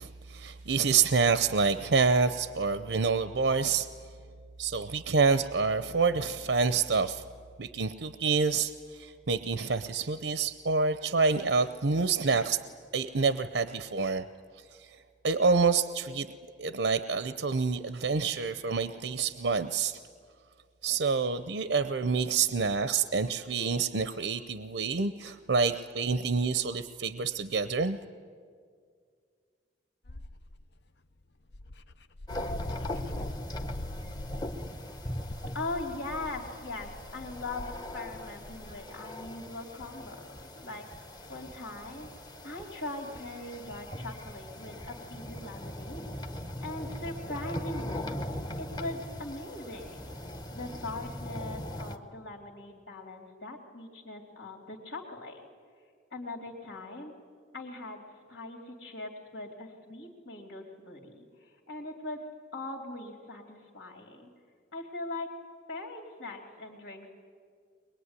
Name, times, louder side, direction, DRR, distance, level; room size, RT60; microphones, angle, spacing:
voice 1, 0.0-3.9 4.6-7.2 7.6-12.6 12.9-14.2 14.8-14.9 15.2-16.3 16.6-20.0 20.8-28.0, right 4 dB, 80° right, 10 dB, 0.7 m, -27 dB
Dog, 30.1-30.6 31.2-31.3 31.5-38.8, left 1 dB, 65° left, 0.7 m, -42 dB
sound 1, 32.3-52.0, left 1 dB, 20° left, 1.0 m, -40 dB
voice 2, 35.5-40.9 41.3-42.1 42.4-46.1 46.6-48.2 48.6-50.1 50.5-55.4 56.1-57.1 57.5-62.2 62.5-64.3 64.7-65.3 65.7-67.1, left 2 dB, 90° left, 0 dB, 3.2 m, -40 dB
23.0 x 22.0 x 9.8 m, 2.1 s
head